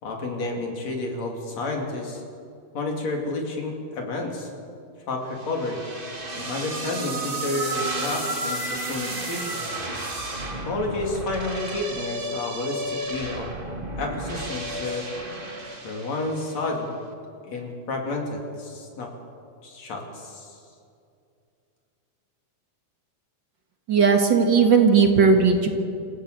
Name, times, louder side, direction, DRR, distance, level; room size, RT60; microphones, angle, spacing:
voice 1, 0.0-2.2 2.7-4.5 5.1-5.8 6.3-9.7 10.6-13.5 14.0-15.1 15.8-16.9 17.4-19.1 19.6-20.6, left 2 dB, 60° left, 1 dB, 4.2 m, -30 dB
sound 1, 5.4-16.7, right 1 dB, 20° right, 1.7 m, -32 dB
voice 2, 23.9-25.7, right 5 dB, 45° right, 4 dB, 1.9 m, -17 dB
28.0 x 14.5 x 8.4 m, 2.5 s
omnidirectional pair, 3.4 m